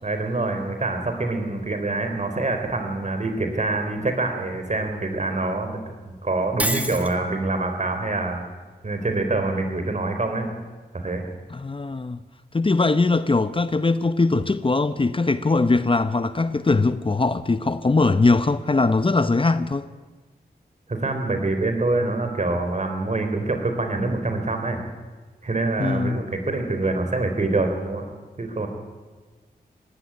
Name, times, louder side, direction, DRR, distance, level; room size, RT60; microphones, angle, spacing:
voice 1, 0.0-5.8 6.0-8.4 8.8-10.5 10.9-11.2 20.9-24.8 25.4-28.1 28.4-28.7, right 2 dB, 45° right, 4.2 m, -25 dB
Shatter, 6.6-7.1, right 1 dB, 10° right, 2.4 m, -26 dB
voice 2, 11.5-12.2 12.5-19.9 25.8-26.2, left 3 dB, 30° left, 0.8 m, -21 dB
18.5 x 16.0 x 9.9 m
cardioid pair, 55°, 17 cm